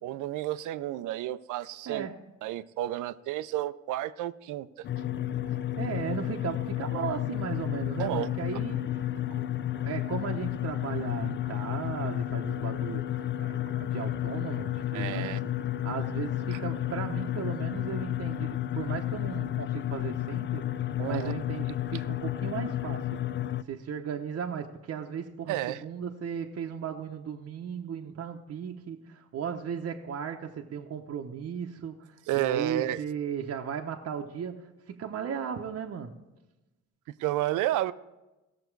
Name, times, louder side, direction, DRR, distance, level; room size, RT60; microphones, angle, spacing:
voice 1, 0.0-2.1 2.4-4.9 8.0-8.3 8.7-8.8 14.9-15.4 16.5-16.6 21.0-21.3 25.5-25.8 32.3-33.0 37.2-37.9, right 13 dB, 85° right, 15 dB, 0.5 m, -31 dB
sound 1, 4.8-23.6, left 12 dB, 40° left, 0.4 m, -32 dB
voice 2, 5.5-9.4 9.8-15.4 15.8-20.7 21.0-23.1 23.7-32.0 32.3-36.1, right 7 dB, 50° right, 2 dB, 0.8 m, -36 dB
17.0 x 6.8 x 4.6 m, 1.1 s
cardioid pair, 90°, 30 cm